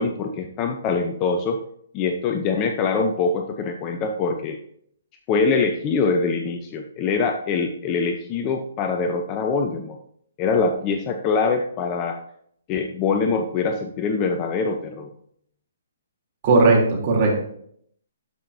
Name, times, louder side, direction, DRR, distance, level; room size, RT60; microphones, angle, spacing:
voice 1, 0.0-1.6 1.9-4.6 5.3-10.0 10.4-12.2 12.7-15.1, left 4 dB, 30° left, 4 dB, 0.8 m, -24 dB
voice 2, 16.4-17.3, right 3 dB, 40° right, -2 dB, 3.4 m, -17 dB
13.0 x 6.0 x 2.8 m, 0.66 s
hypercardioid pair, 135°, 0 cm